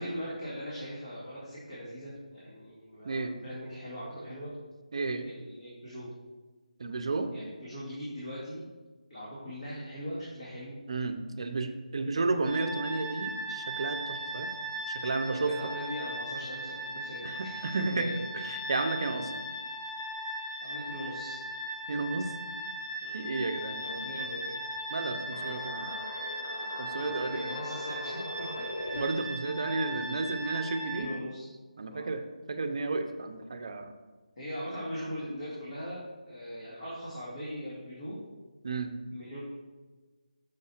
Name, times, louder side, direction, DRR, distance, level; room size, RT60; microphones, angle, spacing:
voice 1, 0.0-4.6 5.2-6.1 7.3-8.7 9.1-10.8 15.2-18.2 20.6-21.4 23.0-23.2 23.8-24.6 27.1-28.2 30.8-31.5 31.9-32.1 34.4-38.2 39.1-39.4, equal, 45° left, -9 dB, 2.1 m, -40 dB
voice 2, 4.9-5.3 6.8-7.3 10.9-14.5 14.9-15.5 17.2-19.3 21.9-22.3 23.1-23.8 24.9-25.9 26.8-27.5 28.9-31.1 31.8-32.2 32.5-33.9 34.8-34.9 38.6-38.9, right 3 dB, 45° right, 7 dB, 0.6 m, -32 dB
sound 1, 12.5-31.0, right 1 dB, 15° left, 1.5 m, -38 dB
sound 2, 25.2-29.0, left 1 dB, 80° left, 1.1 m, -40 dB
6.5 x 4.8 x 4.2 m, 1.3 s
figure-of-eight pair, 170°, 4 cm